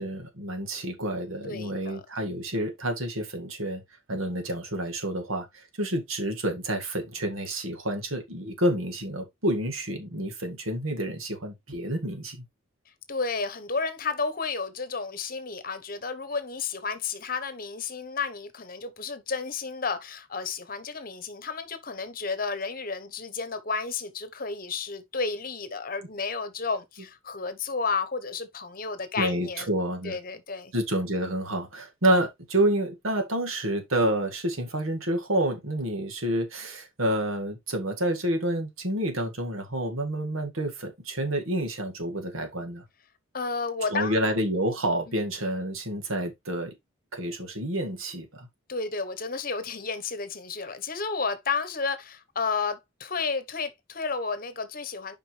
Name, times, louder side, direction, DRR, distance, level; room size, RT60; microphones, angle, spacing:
voice 1, 0.0-3.8 4.1-12.4 29.2-30.2 30.7-42.8 43.9-46.7 47.1-48.5, right 1 dB, 90° right, 2.1 m, -29 dB
voice 2, 1.4-2.0 13.1-29.7 30.0-30.7 43.3-44.3 45.1-45.2 48.7-55.1, left 4 dB, 45° left, 1.1 m, -32 dB
7.7 x 5.3 x 3.3 m
head